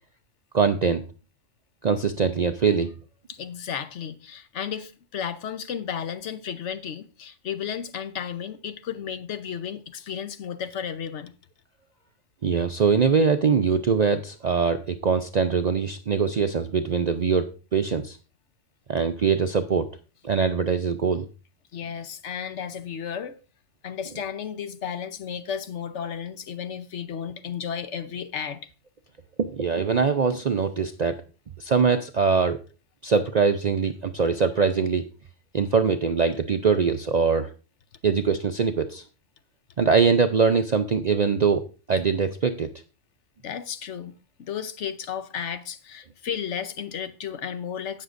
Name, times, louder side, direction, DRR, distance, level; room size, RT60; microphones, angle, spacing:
voice 1, 0.5-1.0 1.8-2.9 12.4-18.2 18.9-19.9 20.2-21.3 29.4-31.1 31.6-32.6 33.0-35.0 35.5-37.5 38.0-39.0 39.8-42.7, right 5 dB, 55° right, 0.5 m, -22 dB
voice 2, 3.3-11.3 21.7-23.4 23.8-28.6 43.4-44.1 44.4-48.0, left 8 dB, 65° left, 1.1 m, -33 dB
17.0 x 6.5 x 2.5 m
omnidirectional pair, 1.3 m